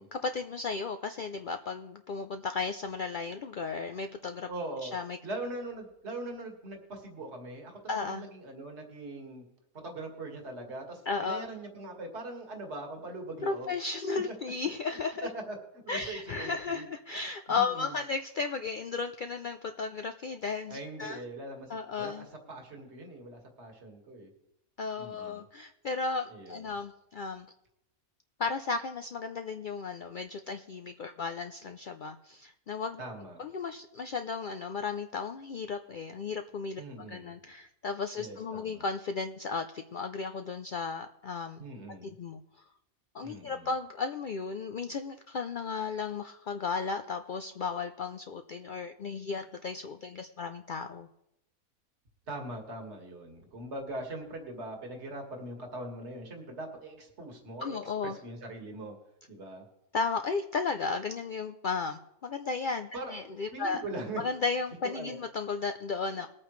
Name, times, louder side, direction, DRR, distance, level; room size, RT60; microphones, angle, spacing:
voice 1, 0.0-4.5 4.8-5.2 7.9-8.3 11.1-11.4 13.4-15.3 15.9-21.2 21.7-22.3 24.8-27.5 28.4-33.0 33.4-36.8 37.1-41.6 42.0-42.6 43.1-51.1 57.6-58.2 59.9-63.8 64.2-66.3, left 4 dB, 80° left, 7 dB, 0.4 m, -34 dB
voice 2, 4.5-4.9 5.2-9.4 9.7-13.7 15.2-15.6 15.8-16.9 17.6-17.9 20.7-24.3 25.0-25.4 26.3-26.7 33.0-33.4 36.8-37.3 38.2-38.9 41.6-42.1 43.2-43.7 52.3-58.9 59.3-59.6 62.9-63.2 63.5-64.2 64.8-65.2, right 2 dB, 50° right, 2 dB, 2.1 m, -41 dB
21.0 x 8.7 x 3.2 m, 0.85 s
omnidirectional pair, 1.5 m